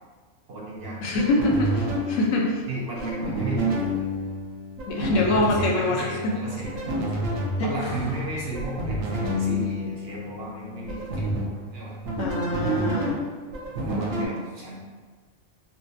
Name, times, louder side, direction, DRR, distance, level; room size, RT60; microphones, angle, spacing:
voice 1, 0.5-1.1 2.7-4.0 5.4-7.2 7.6-11.3 11.6-12.0 13.7-14.8, right 2 dB, 60° right, -4 dB, 0.7 m, -34 dB
sound 1, 0.8-14.3, equal, 85° right, 1.1 m, -30 dB
voice 2, 1.0-2.6 4.9-6.4 7.6-7.7 12.2-13.2, left 2 dB, 75° left, -2 dB, 1.0 m, -24 dB
sound 2, 7.7-8.7 11.3-11.9, equal, 50° left, 0.4 m, -37 dB
4.1 x 2.3 x 2.6 m, 1.4 s
omnidirectional pair, 1.3 m